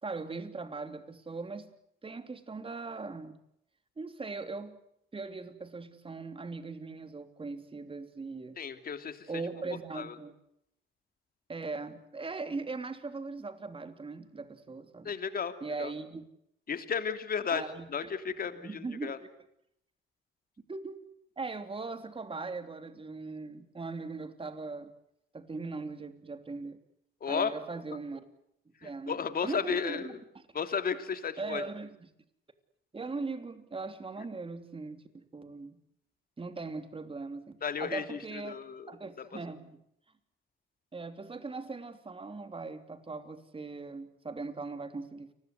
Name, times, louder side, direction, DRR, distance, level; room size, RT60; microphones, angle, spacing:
voice 1, 0.0-1.7 2.0-3.4 4.0-4.8 5.1-8.6 9.3-10.3 11.5-15.1 15.6-16.2 17.5-18.2 18.5-19.3 20.7-21.0 21.4-24.9 25.3-26.8 27.3-28.2 28.8-30.4 31.4-32.0 32.9-35.8 36.4-38.5 38.9-39.8 40.9-45.3, right 3 dB, 25° right, 9 dB, 3.3 m, -40 dB
voice 2, 8.6-9.4 9.9-10.1 15.0-15.5 15.8-15.9 16.7-19.2 27.2-27.5 28.8-30.2 30.5-31.6 37.6-39.3, left 6 dB, 45° left, 9 dB, 3.0 m, -34 dB
29.5 x 21.0 x 8.0 m, 0.76 s
cardioid pair, 90°, 20 cm